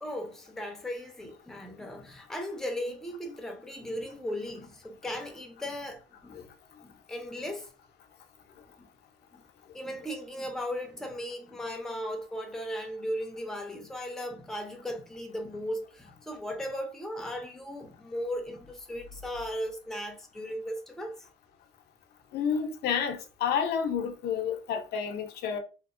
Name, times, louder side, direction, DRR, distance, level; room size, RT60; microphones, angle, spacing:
voice 1, 0.0-6.4 6.8-7.7 8.8-8.9 9.3-9.4 9.7-21.3, equal, 5° left, 0.5 m, -37 dB
voice 2, 22.3-25.6, left 7 dB, 75° left, 0.6 m, -30 dB
2.8 x 2.0 x 2.5 m
cardioid pair, 110°, 17 cm